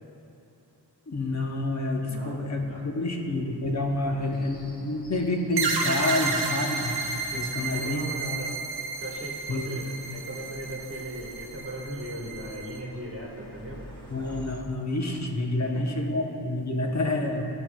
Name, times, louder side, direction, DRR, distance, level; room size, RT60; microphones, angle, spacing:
voice 1, 1.1-7.0 7.3-8.0 9.5-9.8 14.1-17.5, left 2 dB, 40° left, 1 dB, 0.8 m, -28 dB
sound 1, 3.3-14.6, right 1 dB, 10° left, 1.2 m, -49 dB
sound 2, 5.6-12.8, right 4 dB, 65° right, 0.8 m, -32 dB
voice 2, 7.3-8.6 9.0-13.9 15.7-15.9, equal, 30° right, -4 dB, 1.5 m, -38 dB
13.0 x 4.4 x 2.3 m, 2.9 s
wide cardioid pair, 70°, 42 cm